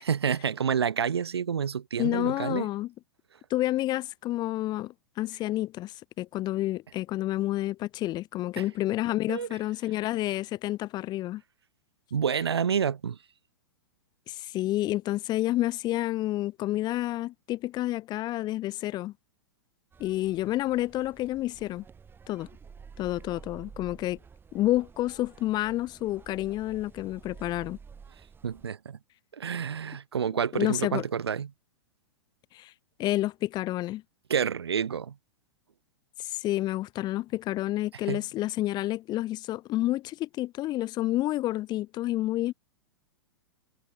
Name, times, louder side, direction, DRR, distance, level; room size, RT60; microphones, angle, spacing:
voice 1, 0.0-2.7 8.6-8.7 9.3-9.5 12.1-13.2 28.4-29.0 29.3-31.5 34.3-35.2 38.1-38.2, right 7 dB, 75° right, 1.9 m, -28 dB
voice 2, 2.0-2.9 3.5-11.4 14.3-19.1 20.0-21.8 22.3-22.5 23.0-24.2 24.5-27.8 30.5-31.0 32.5-32.7 33.0-34.0 36.2-42.5, left 15 dB, 30° left, 1.4 m, -29 dB
sound 1, 19.9-28.7, right 6 dB, 15° right, 4.7 m, -51 dB
figure-of-eight pair, 105°, 13 cm